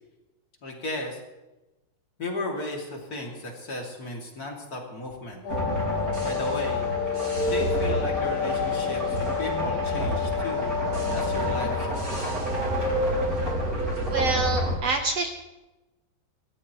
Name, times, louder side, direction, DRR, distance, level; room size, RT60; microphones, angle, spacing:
voice 1, 0.6-1.2 2.2-5.4 6.2-6.9 7.5-10.8 11.1-12.3, left 1 dB, 30° left, 0 dB, 2.6 m, -34 dB
Wind instrument woodwind instrument, 5.4-12.2, left 10 dB, 70° left, 4.9 m, -30 dB
sound 1, 5.5-14.8, equal, 25° right, 5.4 m, -28 dB
voice 2, 14.1-15.3, right 3 dB, 70° right, 4 dB, 1.5 m, -26 dB
27.0 x 14.0 x 3.1 m, 1.0 s
omnidirectional pair, 4.1 m